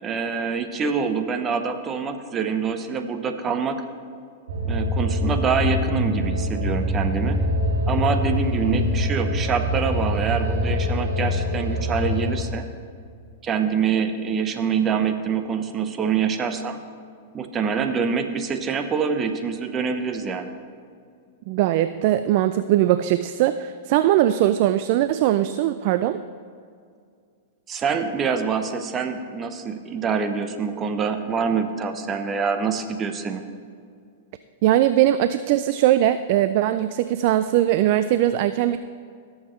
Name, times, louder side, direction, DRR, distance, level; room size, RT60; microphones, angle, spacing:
voice 1, 0.0-3.8 4.6-7.4 7.9-12.6 13.4-16.8 17.3-20.5 27.7-33.4, right 6 dB, 25° right, 8 dB, 0.9 m, -25 dB
sound 1, 4.5-12.3, left 1 dB, 75° right, 2.0 m, -24 dB
voice 2, 21.5-26.2 34.6-38.8, right 13 dB, 55° right, 12 dB, 0.3 m, -20 dB
17.0 x 7.3 x 3.2 m, 2.2 s
hypercardioid pair, 115°, 0 cm